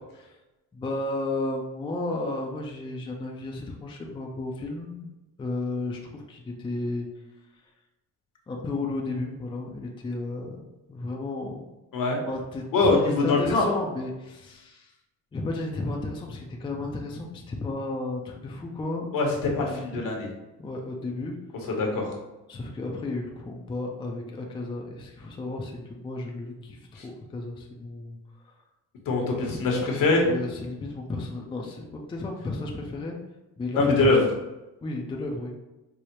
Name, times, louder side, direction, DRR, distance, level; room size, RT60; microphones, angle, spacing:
voice 1, 0.7-5.1 5.4-7.1 8.5-10.6 10.9-11.7 12.3-14.9 15.3-19.1 19.6-20.0 20.6-21.4 22.5-28.2 30.2-33.2 33.6-34.1 34.8-35.6, left 2 dB, 15° left, 1 dB, 0.4 m, -33 dB
voice 2, 12.7-13.7 19.1-20.3 21.7-22.1 26.9-27.0 29.1-30.3 33.7-34.2, left 3 dB, 65° left, 0 dB, 1.1 m, -23 dB
4.7 x 2.0 x 2.9 m, 1.0 s
cardioid pair, 105°, 36 cm